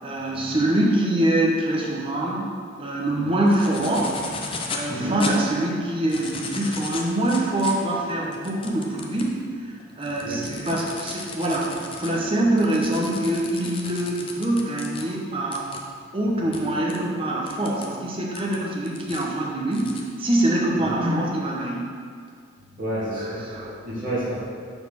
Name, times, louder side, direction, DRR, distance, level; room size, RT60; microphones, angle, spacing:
voice 1, 0.0-2.5 2.8-4.2 4.7-11.7 12.0-15.7 16.1-19.9 20.2-21.9 23.5-23.7, right 1 dB, 25° right, -3 dB, 0.9 m, -24 dB
sound 1, 3.5-4.9 5.2-5.3 5.9-9.3 9.8-15.0 15.5-15.8 16.5-16.6 16.9-17.0 17.5-17.9 18.3-19.2 19.7-20.0, left 4 dB, 25° left, 0.5 m, -36 dB
voice 2, 4.7-5.1 10.2-10.4 20.8-20.9 22.8-23.5 23.8-24.4, right 1 dB, 40° right, -10 dB, 1.9 m, -30 dB
7.0 x 4.2 x 5.7 m, 2.1 s
head